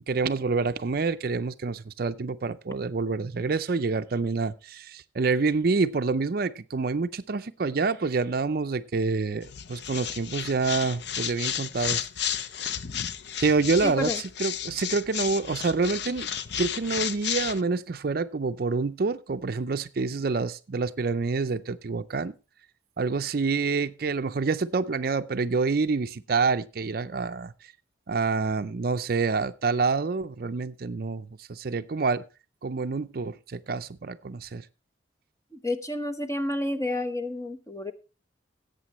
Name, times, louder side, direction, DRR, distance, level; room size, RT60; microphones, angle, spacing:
voice 1, 0.1-12.1 13.4-14.1 14.4-16.3 16.6-22.3 23.0-27.5 28.1-32.2 32.6-34.6, right 4 dB, 50° right, 0.5 m, -27 dB
sound 1, 9.4-17.6, left 9 dB, 60° left, 0.6 m, -33 dB
voice 2, 13.8-14.2 35.5-37.9, left 1 dB, 15° left, 0.9 m, -30 dB
17.5 x 8.2 x 3.0 m
head